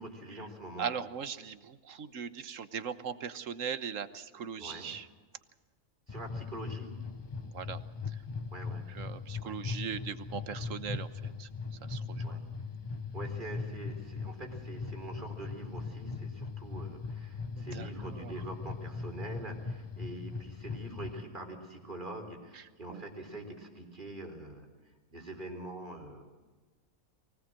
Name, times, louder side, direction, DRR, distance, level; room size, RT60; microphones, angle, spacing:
voice 1, 0.0-0.9 4.6-4.9 6.1-6.9 8.5-8.8 9.4-9.6 12.2-12.4 13.1-24.7 25.1-26.2, right 1 dB, 40° right, 2 dB, 4.3 m, -44 dB
voice 2, 0.8-5.1 7.4-7.8 8.1-8.2 8.9-11.5 11.9-12.4 17.6-18.3 22.5-23.0, right 7 dB, 75° right, 12 dB, 1.4 m, -40 dB
sound 1, 6.1-21.2, left 4 dB, 25° left, 0.8 m, -40 dB
24.0 x 17.5 x 7.6 m, 1.4 s
omnidirectional pair, 1.4 m